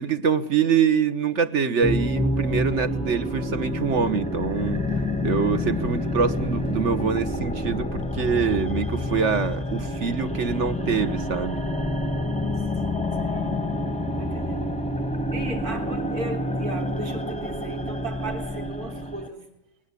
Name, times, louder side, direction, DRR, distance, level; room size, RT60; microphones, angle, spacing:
voice 1, 0.0-4.8 5.2-11.6, right 6 dB, 55° right, 12 dB, 1.5 m, -24 dB
sound 1, 1.8-19.3, left 1 dB, 5° left, 0.8 m, -28 dB
voice 2, 13.2-13.6 14.2-14.9 15.3-19.5, right 2 dB, 80° right, 3 dB, 3.8 m, -36 dB
21.0 x 19.5 x 8.4 m, 0.83 s
omnidirectional pair, 1.6 m